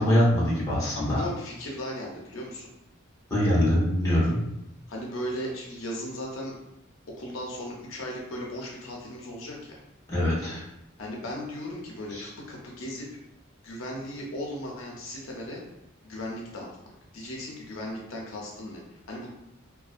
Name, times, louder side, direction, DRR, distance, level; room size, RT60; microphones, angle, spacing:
voice 1, 0.0-1.3 3.3-4.4 10.1-10.6 12.1-12.2, equal, 15° left, -8 dB, 0.8 m, -23 dB
voice 2, 1.0-2.7 4.9-6.5 7.2-9.8 11.0-13.1 13.6-15.6 16.0-16.7 17.1-19.3, equal, 80° left, -2 dB, 0.5 m, -36 dB
2.5 x 2.1 x 2.4 m, 0.84 s
head